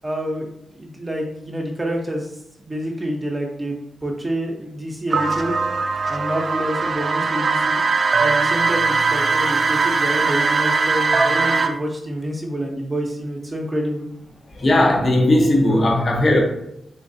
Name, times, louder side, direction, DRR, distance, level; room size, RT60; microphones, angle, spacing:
voice 1, 0.0-0.5 0.8-2.3 2.6-3.7 4.0-5.5 6.1-7.8 8.2-14.0 15.4-15.5, equal, 20° right, 0 dB, 0.7 m, -27 dB
sound 1, 5.1-11.7, right 4 dB, 50° right, 0.4 m, -20 dB
voice 2, 14.6-16.4, left 1 dB, 45° left, 0 dB, 0.9 m, -17 dB
3.7 x 3.2 x 2.6 m, 0.79 s
cardioid pair, 80°, 0 cm